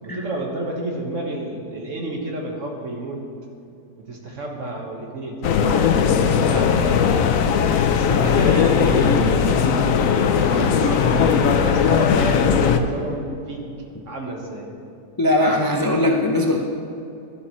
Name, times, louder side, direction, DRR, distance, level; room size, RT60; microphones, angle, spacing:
voice 1, 0.0-3.2 4.0-7.0 7.9-9.8 10.3-13.6 14.0-14.7, right 1 dB, 55° right, 0 dB, 1.7 m, -30 dB
sound 1, 5.4-12.8, left 6 dB, 65° left, 1.0 m, -18 dB
voice 2, 15.2-16.6, left 1 dB, 30° left, 0 dB, 0.4 m, -20 dB
12.5 x 11.5 x 3.1 m, 2.7 s
omnidirectional pair, 1.7 m